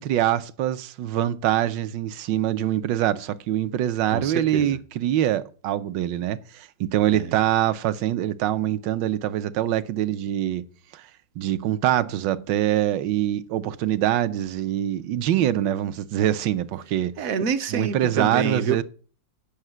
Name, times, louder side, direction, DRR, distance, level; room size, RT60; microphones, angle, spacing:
voice 1, 0.0-10.6 10.9-11.0 11.4-17.1 17.7-18.8, right 12 dB, 75° right, 1.3 m, -24 dB
voice 2, 4.1-4.8 7.1-7.4 17.2-18.8, right 6 dB, 60° right, 0.9 m, -27 dB
8.6 x 5.7 x 7.8 m
omnidirectional pair, 2.0 m